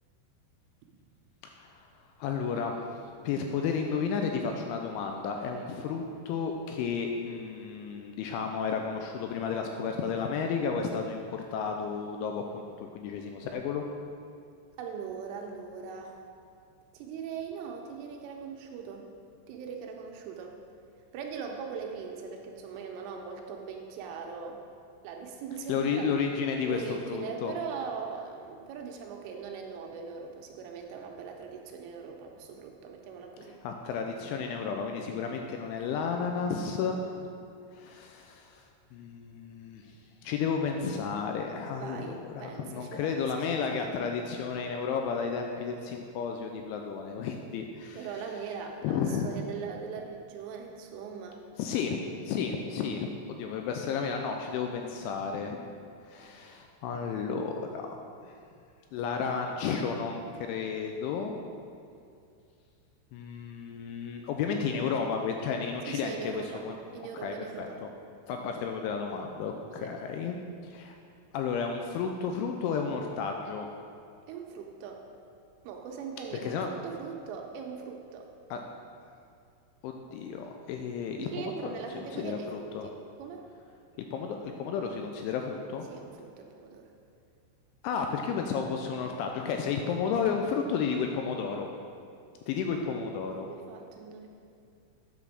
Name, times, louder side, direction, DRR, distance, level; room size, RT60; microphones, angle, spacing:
voice 1, 2.2-2.8 3.2-13.8 25.7-27.5 33.6-37.3 37.7-38.6 38.9-39.8 40.2-48.1 48.8-49.4 51.6-53.1 53.4-55.6 56.1-58.0 58.2-58.3 58.9-61.4 63.1-66.7 67.1-67.9 68.3-70.9 71.3-73.7 76.3-76.7 78.5-78.6 79.8-82.9 84.1-85.9 87.8-91.7 92.5-93.5, left 6 dB, 85° left, 3 dB, 2.8 m, -32 dB
voice 2, 14.8-16.2 16.9-19.1 19.5-20.6 21.1-24.6 25.0-26.1 26.7-33.6 41.7-43.6 47.9-51.4 65.9-66.7 66.9-67.8 69.8-69.9 74.3-75.1 75.6-78.3 81.2-83.5 85.9-86.9 92.6-92.8 93.5-94.3, right 6 dB, 85° right, 2 dB, 3.2 m, -40 dB
9.0 x 6.1 x 6.4 m, 2.5 s
omnidirectional pair, 5.9 m